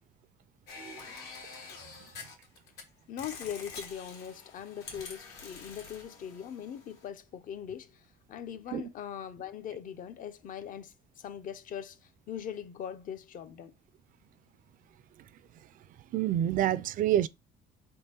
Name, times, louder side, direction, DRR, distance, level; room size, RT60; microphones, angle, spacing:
sound 1, 0.7-2.8 3.2-7.1, left 4 dB, 80° left, 1.6 m, -47 dB
voice 1, 3.1-13.7, left 9 dB, 55° left, 0.6 m, -41 dB
voice 2, 16.1-17.3, right 12 dB, 55° right, 0.4 m, -27 dB
3.6 x 3.1 x 4.3 m
cardioid pair, 110°, 17 cm